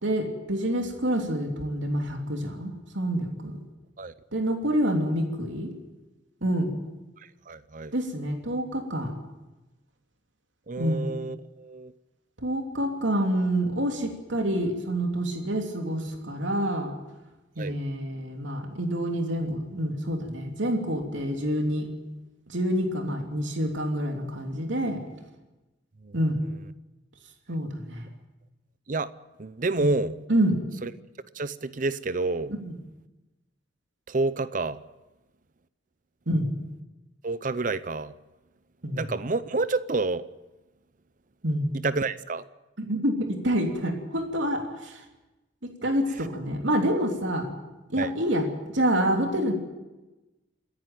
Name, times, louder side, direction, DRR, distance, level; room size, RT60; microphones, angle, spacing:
voice 1, 0.0-3.6 4.3-5.7 6.4-6.7 7.9-9.1 10.8-11.0 12.4-16.9 17.5-21.9 22.5-25.0 26.1-26.4 27.5-28.1 29.8-29.9 30.3-30.6 32.6-32.7 36.3-36.5 38.8-39.0 41.4-41.7 42.8-45.0 45.8-47.5 47.9-48.5 48.7-49.5, equal, 75° right, 3 dB, 3.1 m, -27 dB
voice 2, 7.5-7.9 10.7-11.9 17.6-17.8 26.0-26.1 28.9-29.1 29.4-30.2 30.8-30.9 31.3-32.5 34.1-34.8 37.2-38.1 38.9-40.2 41.8-42.4 48.0-48.1, right 3 dB, 45° right, 16 dB, 0.6 m, -29 dB
28.5 x 10.5 x 9.2 m, 1.1 s
head